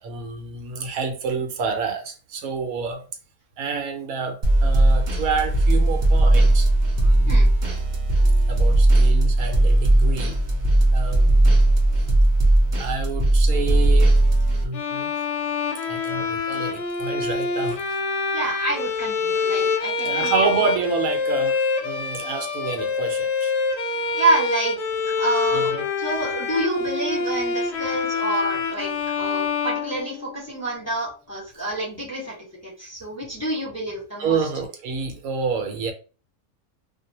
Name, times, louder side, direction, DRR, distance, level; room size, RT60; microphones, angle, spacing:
voice 1, 0.0-3.0 3.6-6.7 7.0-7.5 8.5-10.4 10.9-11.5 12.8-14.2 14.6-15.1 15.8-18.0 20.0-23.5 23.9-24.2 25.5-25.9 34.2-35.9, right 4 dB, 85° right, 1.1 m, -28 dB
sound 1, 4.4-14.6, right 1 dB, 50° right, 0.5 m, -17 dB
Bowed string instrument, 14.7-30.6, left 4 dB, 75° left, 0.4 m, -26 dB
voice 2, 18.3-20.3 24.1-24.8 25.2-25.7 26.0-32.3 32.6-34.4, right 2 dB, 10° left, 1.1 m, -27 dB
2.5 x 2.2 x 2.7 m
omnidirectional pair, 1.4 m